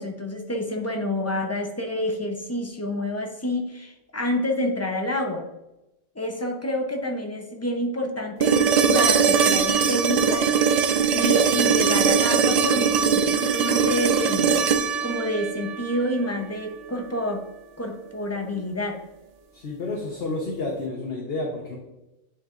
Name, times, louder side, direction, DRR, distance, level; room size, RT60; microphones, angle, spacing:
voice 1, 0.0-5.5 6.1-8.6 8.9-10.5 11.1-14.6 15.0-17.5 17.8-19.0, left 1 dB, 15° left, 2 dB, 0.6 m, -28 dB
sound 1, 8.4-16.5 18.6-18.7, right 6 dB, 85° right, 0.3 m, -21 dB
voice 2, 19.5-21.8, left 2 dB, 55° left, -1 dB, 1.2 m, -30 dB
9.1 x 4.5 x 2.5 m, 0.96 s
omnidirectional pair, 1.3 m